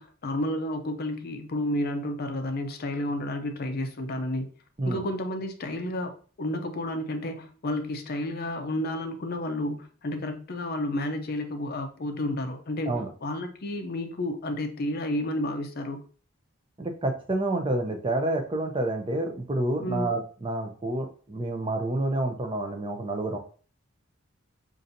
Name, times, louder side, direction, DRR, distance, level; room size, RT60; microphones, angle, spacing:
voice 1, 0.0-4.5 4.8-6.1 6.4-16.0 19.8-20.1, left 1 dB, 45° left, 0.5 m, -31 dB
voice 2, 16.8-23.4, right 2 dB, 25° right, 0.5 m, -28 dB
5.4 x 2.6 x 2.6 m
head